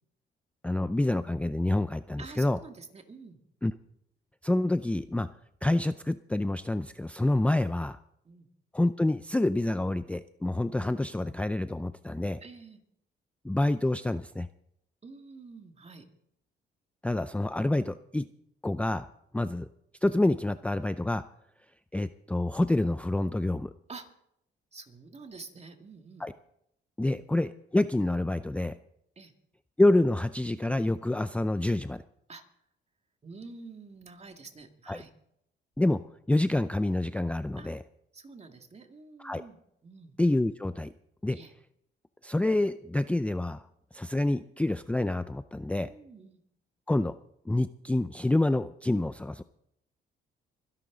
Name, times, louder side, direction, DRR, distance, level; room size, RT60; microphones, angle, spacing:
voice 1, 0.6-2.6 3.6-3.7 4.4-5.3 5.6-8.0 8.7-12.4 13.4-14.5 17.0-18.3 18.6-19.1 19.3-19.7 20.0-21.2 21.9-23.7 26.2-26.3 27.0-28.8 29.8-32.0 34.9-35.0 35.8-36.0 36.3-37.8 39.2-39.4 40.2-40.9 41.2-41.4 42.2-43.6 43.9-45.9 46.9-47.1 47.5-49.4, left 1 dB, 5° left, 12 dB, 0.4 m, -27 dB
voice 2, 2.2-3.4 8.2-8.5 12.4-12.8 15.0-16.1 23.9-24.1 24.7-26.3 27.0-27.3 29.2-29.3 32.3-32.4 33.2-35.1 37.6-37.7 38.1-39.6 39.8-40.2 41.3-41.5 45.8-46.4, right 4 dB, 30° right, 5 dB, 2.3 m, -48 dB
24.5 x 11.0 x 4.0 m, 0.74 s
cardioid pair, 90°, 20 cm